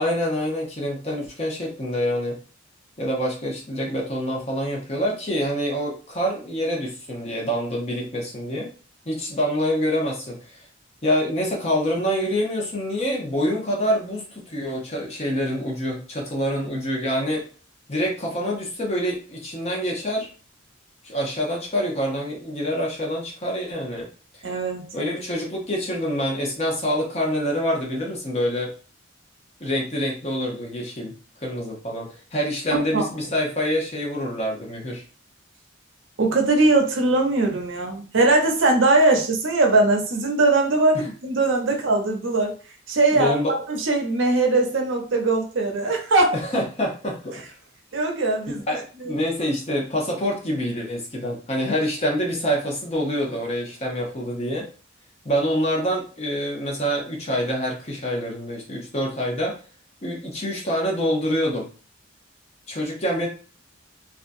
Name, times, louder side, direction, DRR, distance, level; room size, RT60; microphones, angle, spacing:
voice 1, 0.0-2.4 3.0-8.7 9.1-10.6 11.0-17.4 17.9-20.3 21.0-24.1 24.9-28.7 29.6-35.0 40.9-41.0 43.1-43.5 46.3-47.4 48.5-54.7 55.2-59.6 60.0-61.7 62.7-63.3, equal, 35° left, -1 dB, 0.8 m, -26 dB
voice 2, 24.4-24.9 32.7-33.1 36.2-42.5 42.9-43.3 43.7-46.3 47.9-48.6 49.0-49.1, right 2 dB, 75° right, 2 dB, 0.7 m, -20 dB
2.7 x 2.3 x 2.6 m, 0.38 s
head